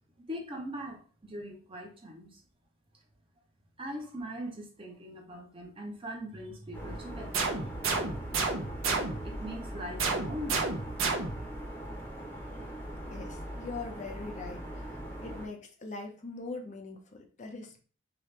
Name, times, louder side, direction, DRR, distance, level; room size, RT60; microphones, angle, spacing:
voice 1, 0.2-2.4 3.8-8.1 9.2-11.1, equal, 25° right, 1 dB, 0.7 m, -41 dB
sound 1, 6.7-15.5, equal, 10° left, 0.8 m, -41 dB
sound 2, 7.3-9.4 10.0-11.6, right 4 dB, 80° right, 0.7 m, -31 dB
voice 2, 13.0-14.9 15.2-17.8, left 3 dB, 35° left, 3 dB, 0.5 m, -42 dB
2.9 x 2.9 x 3.2 m, 0.40 s
head